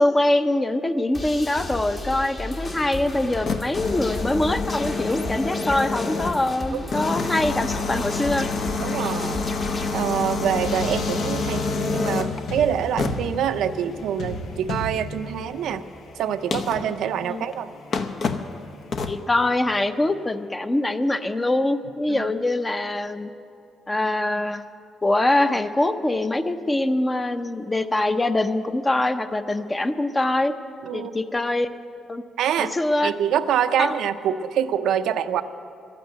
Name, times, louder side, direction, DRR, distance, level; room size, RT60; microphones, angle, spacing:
voice 1, 0.0-8.5 17.2-17.4 19.1-23.3 23.9-24.6 25.0-30.5 30.9-31.7 32.1-32.2 32.6-33.1 33.8-33.9, left 2 dB, 20° left, 10 dB, 0.6 m, -23 dB
sound 1, 1.1-9.9, left 2 dB, 40° left, 1.6 m, -34 dB
sound 2, 3.2-6.5 6.9-12.4 13.0-13.3 15.7-15.8 16.5-16.9 17.5-17.6 17.9-18.5 18.9-19.2, left 4 dB, 55° left, 0.8 m, -27 dB
voice 2, 6.7-7.1 8.8-9.4 9.9-15.8 16.2-17.7 22.1-22.3 30.8-31.1 32.4-32.8 33.0-35.4, right 9 dB, 80° right, 10 dB, 0.5 m, -25 dB
sound 3, 10.3-20.1, left 2 dB, 75° left, 1.2 m, -36 dB
12.0 x 9.1 x 9.1 m, 2.7 s
cardioid pair, 90°, 0 cm